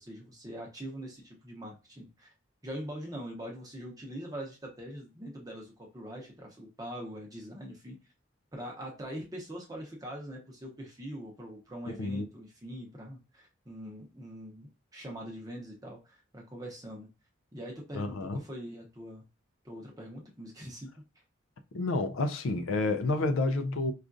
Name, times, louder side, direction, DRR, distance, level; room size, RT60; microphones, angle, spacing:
voice 1, 0.0-2.3 2.6-8.0 8.5-17.1 17.5-19.2 19.6-20.9, equal, 15° right, 0.7 m, -43 dB
voice 2, 11.9-12.3 17.9-18.4 21.7-23.9, left 2 dB, 80° left, 0.4 m, -30 dB
4.9 x 2.4 x 2.5 m
head